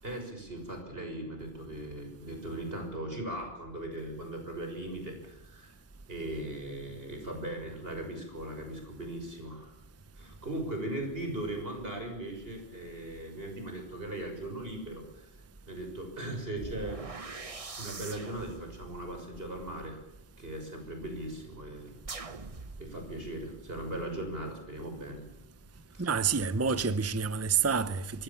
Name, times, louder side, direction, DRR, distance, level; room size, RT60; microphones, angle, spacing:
voice 1, 0.0-5.7 6.1-9.8 10.2-15.3 15.7-17.0 17.8-20.0 20.4-22.0 22.8-25.2 25.9-26.1, right 1 dB, 65° right, 6.5 m, -39 dB
sound 1, 16.5-20.6 22.0-23.5, right 3 dB, 35° right, 1.2 m, -44 dB
voice 2, 26.0-28.2, right 5 dB, 15° right, 0.8 m, -28 dB
25.5 x 22.0 x 7.2 m
omnidirectional pair, 1.1 m